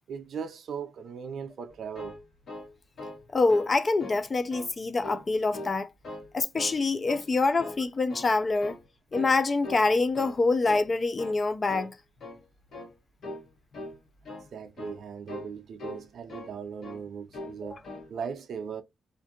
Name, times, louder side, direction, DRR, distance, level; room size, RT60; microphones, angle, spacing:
voice 1, 0.1-2.2 14.5-18.8, right 6 dB, 70° right, 0.4 m, -38 dB
sound 1, 1.7-3.2 3.5-3.7 4.0-4.7 5.0-5.8 6.0-6.8 7.1-7.3 7.6-8.4 8.6-8.9 9.1-9.4 9.6-10.4 10.6-10.9 11.2-11.4 11.7-11.9 12.2-12.4 12.7-12.9 13.2-13.5 13.7-14.0 14.2-14.5 14.8-15.0 15.3-15.5 15.8-16.6 16.8-17.0 17.3-17.6 17.8-18.1, left 1 dB, 60° left, 1.2 m, -41 dB
voice 2, 3.3-5.9 6.3-8.8 9.1-11.9, left 3 dB, 35° left, 0.3 m, -25 dB
2.5 x 2.5 x 2.5 m
cardioid pair, 105°, 0 cm